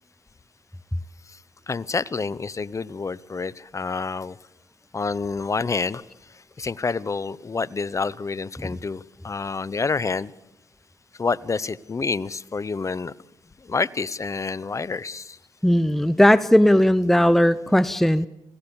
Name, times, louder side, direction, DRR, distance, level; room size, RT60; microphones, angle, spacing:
voice 1, 1.7-4.4 4.9-10.3 11.2-13.1 13.6-15.4, left 4 dB, 35° left, 20 dB, 0.8 m, -28 dB
voice 2, 15.6-18.3, equal, 5° left, 15 dB, 0.7 m, -17 dB
26.5 x 17.0 x 7.1 m, 0.90 s
supercardioid pair, 55°, 9 cm